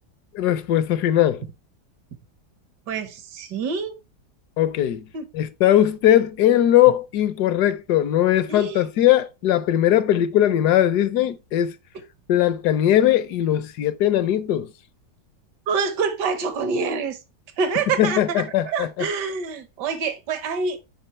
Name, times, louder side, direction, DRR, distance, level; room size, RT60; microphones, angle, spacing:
voice 1, 0.3-1.4 4.6-5.1 5.3-11.7 12.3-14.7 18.0-18.9, left 12 dB, 75° left, 1.2 m, -19 dB
voice 2, 2.9-3.9 5.1-5.3 8.5-8.9 15.7-17.2 17.6-20.8, right 5 dB, 80° right, 1.7 m, -26 dB
8.7 x 4.8 x 3.0 m
omnidirectional pair, 1.8 m